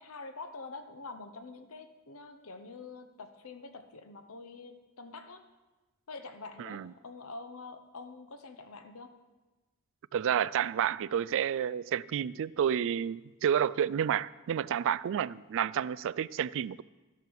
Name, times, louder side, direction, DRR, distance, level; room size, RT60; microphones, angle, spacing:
voice 1, 0.0-5.4 6.1-9.1, left 3 dB, 65° left, 1.0 m, -46 dB
voice 2, 10.1-16.8, right 9 dB, 60° right, 0.3 m, -30 dB
13.0 x 12.0 x 4.8 m
head